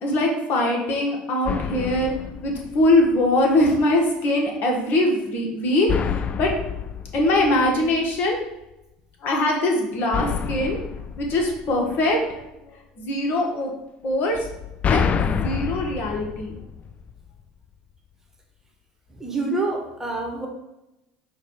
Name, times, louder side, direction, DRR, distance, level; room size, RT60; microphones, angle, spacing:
voice 1, 0.0-2.1 2.4-6.5 7.1-8.4 9.2-10.8 11.2-12.4 13.0-13.7 14.0-14.5 14.9-16.6, left 1 dB, 50° left, 0 dB, 1.3 m, -22 dB
sound 1, 1.4-3.3 5.9-8.3 10.1-12.4 14.3-17.4, left 7 dB, 35° left, 0.3 m, -28 dB
voice 2, 19.2-20.5, right 2 dB, 10° right, 1 dB, 1.2 m, -27 dB
4.6 x 2.4 x 4.6 m, 0.91 s
hypercardioid pair, 80°, 4 cm